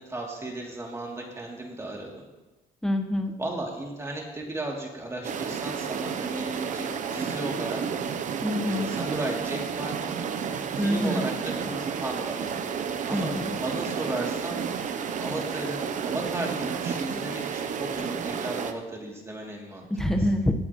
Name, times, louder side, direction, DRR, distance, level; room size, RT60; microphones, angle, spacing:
voice 1, 0.0-2.2 3.4-7.8 8.6-10.0 10.8-11.3 11.6-12.5 13.1-14.6 15.2-19.8, right 2 dB, 15° right, -1 dB, 2.8 m, -35 dB
voice 2, 2.8-3.3 8.4-9.0 10.8-11.3 13.1-13.6 19.9-20.5, equal, 5° left, 4 dB, 1.1 m, -26 dB
sound 1, 5.2-18.7, right 7 dB, 45° right, 0.8 m, -31 dB
18.5 x 8.4 x 3.1 m, 1.1 s
cardioid pair, 110°, 17 cm